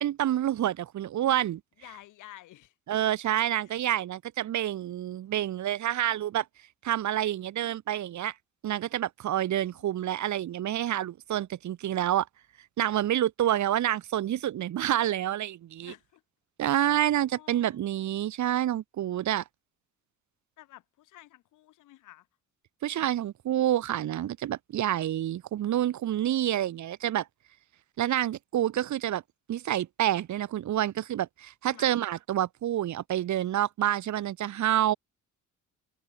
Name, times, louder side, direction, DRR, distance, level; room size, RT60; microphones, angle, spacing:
voice 1, 0.0-1.6 2.9-6.5 6.8-8.3 8.6-12.3 12.8-15.9 16.6-19.4 22.8-27.3 28.0-29.2 29.5-34.9, right 12 dB, 70° right, 2.2 m, -28 dB
voice 2, 1.8-2.7 3.6-3.7 9.4-9.9 15.8-16.2 17.3-17.8 20.6-22.3 31.7-31.9, left 15 dB, 90° left, 7.4 m, -51 dB
cardioid pair, 90°, 30 cm